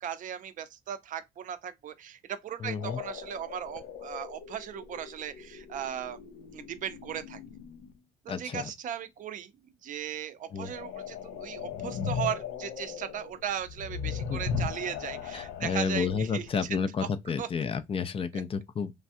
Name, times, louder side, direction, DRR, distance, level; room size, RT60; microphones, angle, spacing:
voice 1, 0.0-6.2 6.5-7.4 8.2-9.5 9.8-16.4 17.4-17.5, right 9 dB, 50° right, 0.5 m, -37 dB
voice 2, 2.6-3.0 8.3-8.7 10.5-10.7 14.3-14.4 15.3-18.9, left 6 dB, 35° left, 0.4 m, -31 dB
sound 1, 2.8-7.9 10.5-16.8, left 6 dB, 85° left, 0.6 m, -38 dB
3.2 x 2.3 x 2.6 m
cardioid pair, 110°, 17 cm